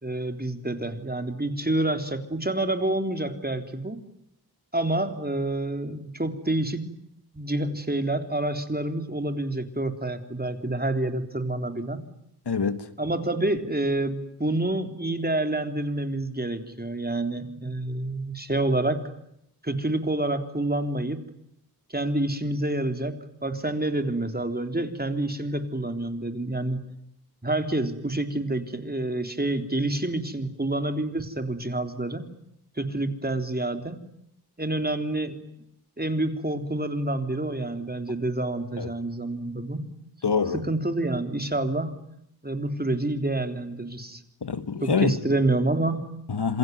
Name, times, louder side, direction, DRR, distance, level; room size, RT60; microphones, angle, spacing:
voice 1, 0.0-4.0 4.7-6.9 7.3-12.1 13.0-19.0 19.6-21.2 21.9-26.8 27.4-32.3 32.8-34.0 34.6-35.4 36.0-39.9 40.5-41.9 42.4-44.2 44.8-46.2, right 2 dB, 25° right, 3.7 m, -28 dB
voice 2, 12.5-12.9 38.8-38.9 40.2-40.6 44.4-45.2 46.3-46.6, left 5 dB, 85° left, 1.8 m, -25 dB
27.0 x 23.0 x 9.5 m
wide cardioid pair, 60°, 39 cm